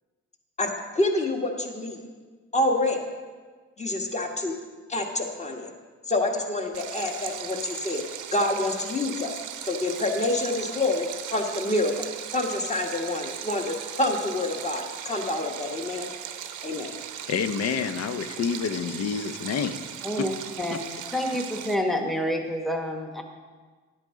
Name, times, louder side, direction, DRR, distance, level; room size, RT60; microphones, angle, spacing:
voice 1, 0.9-2.0 2.5-3.0 3.8-4.5 4.9-5.7 6.1-8.0 8.3-12.0 12.3-16.1 16.6-16.9, left 2 dB, 25° left, 1.4 m, -27 dB
Stream, 6.7-21.8, right 9 dB, 80° right, 0.8 m, -38 dB
voice 2, 17.3-19.8, left 6 dB, 55° left, 0.7 m, -28 dB
voice 3, 20.0-20.8 21.1-23.2, equal, ahead, 1.1 m, -28 dB
10.5 x 8.8 x 3.7 m
cardioid pair, 90°, 30 cm